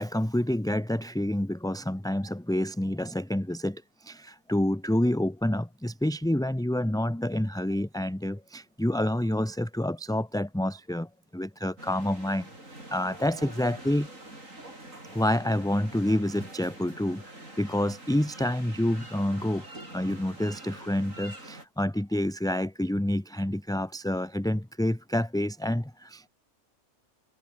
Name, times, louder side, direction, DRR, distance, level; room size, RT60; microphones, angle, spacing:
voice 1, 0.0-14.1 15.1-19.7 19.9-26.3, left 1 dB, 5° left, 0.8 m, -28 dB
sound 1, 11.8-21.7, right 1 dB, 60° right, 8.1 m, -46 dB
omnidirectional pair, 1.5 m